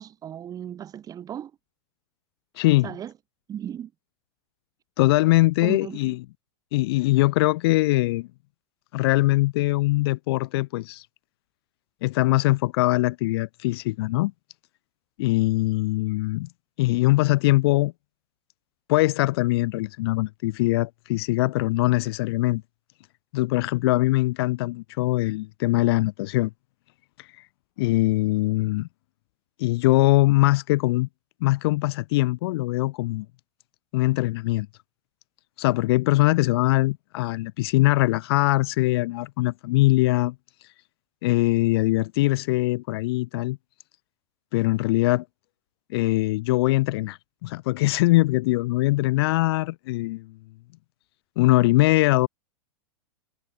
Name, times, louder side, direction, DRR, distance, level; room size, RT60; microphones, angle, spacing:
voice 1, 0.0-1.5 2.8-3.1 3.5-3.9 5.6-6.2, right 10 dB, 25° right, 5.9 m, -36 dB
voice 2, 2.6-2.9 5.0-6.2 6.7-8.3 8.9-11.0 12.0-14.3 15.2-16.5 16.8-17.9 18.9-22.6 23.3-26.5 27.2-27.3 27.8-28.9 29.6-31.1 31.4-33.3 33.9-34.7 35.6-40.3 41.2-43.6 44.5-45.2 45.9-50.3 51.4-52.3, left 20 dB, 60° left, 0.5 m, -22 dB
supercardioid pair, 140°, 15 cm